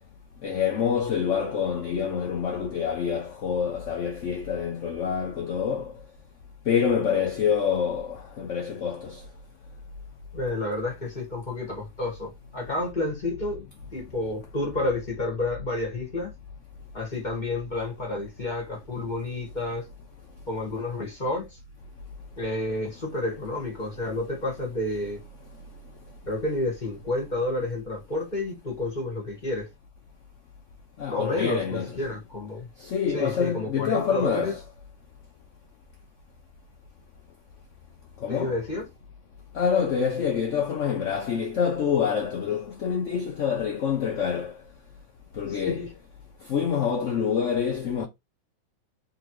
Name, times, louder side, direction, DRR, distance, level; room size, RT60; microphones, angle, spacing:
voice 1, 0.4-5.9 6.7-9.2 31.0-32.0 32.8-34.6 38.2-38.6 39.5-44.6 45.3-45.9 46.5-48.1, left 7 dB, 80° left, 0.6 m, -26 dB
voice 2, 10.3-13.7 13.9-16.3 16.9-19.8 20.5-21.6 22.4-25.2 26.3-29.7 31.1-32.7 33.1-34.5 38.3-38.8 45.5-45.9, left 2 dB, 25° left, 1.6 m, -30 dB
3.7 x 3.3 x 3.1 m
omnidirectional pair, 2.1 m